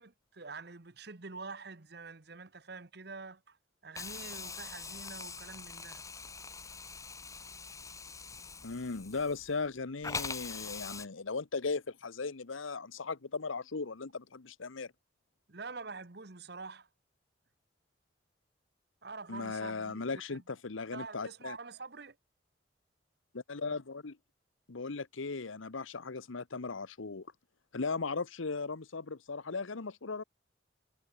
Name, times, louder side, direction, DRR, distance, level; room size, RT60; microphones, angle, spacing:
voice 1, 0.0-3.6 3.8-6.0 15.5-16.9 19.0-20.0 20.3-20.4 20.9-22.2, right 4 dB, 55° right, 1.2 m, -46 dB
Hiss, 4.0-9.7 10.0-11.1, left 4 dB, 15° left, 2.0 m, -43 dB
voice 2, 8.6-14.9 19.3-21.6 23.3-24.2 24.7-27.3 27.7-30.2, left 4 dB, 85° left, 1.0 m, -37 dB
head